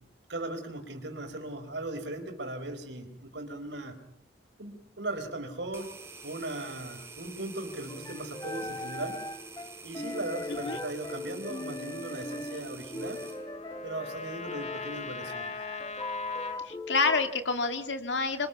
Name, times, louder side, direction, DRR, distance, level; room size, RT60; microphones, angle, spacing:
voice 1, 0.3-4.0 4.6-5.9 6.2-9.2 9.8-13.2 13.8-15.5, right 2 dB, 70° right, 6 dB, 4.2 m, -38 dB
sound 1, 5.7-13.4, right 4 dB, 15° right, 3.9 m, -47 dB
sound 2, 7.9-17.3, left 2 dB, 20° left, 0.9 m, -39 dB
Trumpet, 12.3-16.6, left 4 dB, 40° left, 1.9 m, -41 dB
voice 2, 16.6-18.5, left 4 dB, 75° left, 7 dB, 2.6 m, -28 dB
27.5 x 24.5 x 5.8 m, 0.67 s
head